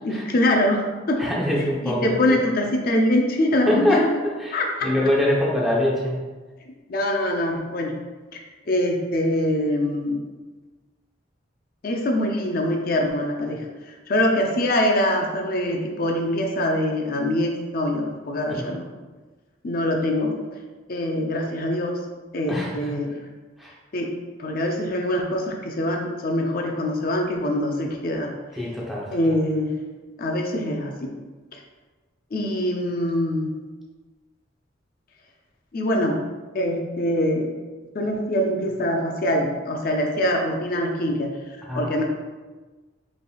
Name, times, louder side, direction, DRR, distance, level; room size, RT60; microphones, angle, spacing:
voice 1, 0.0-1.2 1.8-4.2 4.5-4.9 6.9-7.9 8.3-10.2 11.8-13.7 14.1-18.9 19.6-20.3 20.9-22.0 22.3-23.1 23.9-24.1 24.4-28.3 29.1-29.7 30.2-31.1 32.3-33.5 35.7-36.2 36.5-37.5 37.9-41.3 41.7-42.0, left 1 dB, 50° left, 2 dB, 0.5 m, -24 dB
voice 2, 1.2-2.4 3.6-6.2 18.5-18.8 22.5-23.0 23.6-23.7 28.6-29.1 41.7-42.0, left 1 dB, ahead, -4 dB, 0.7 m, -24 dB
5.1 x 3.3 x 2.3 m, 1.3 s
head